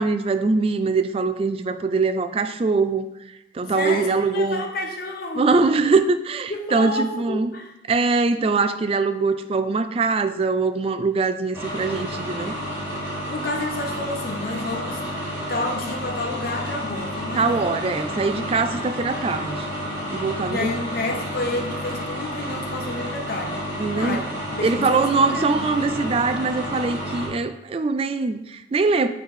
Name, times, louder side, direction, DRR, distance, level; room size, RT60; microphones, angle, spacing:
voice 1, 0.0-3.1 3.5-4.6 5.4-7.5 7.9-12.5 17.4-19.7 20.1-20.6 23.8-24.3 24.6-29.1, right 4 dB, 30° right, 10 dB, 0.3 m, -22 dB
voice 2, 3.7-5.5 6.5-7.7 13.3-15.0 15.5-17.8 20.5-23.7 23.9-24.3 24.6-25.9, left 2 dB, 50° left, 3 dB, 0.8 m, -30 dB
sound 1, 11.5-27.3, equal, 15° right, 2.3 m, -30 dB
6.4 x 3.3 x 4.7 m, 0.92 s
head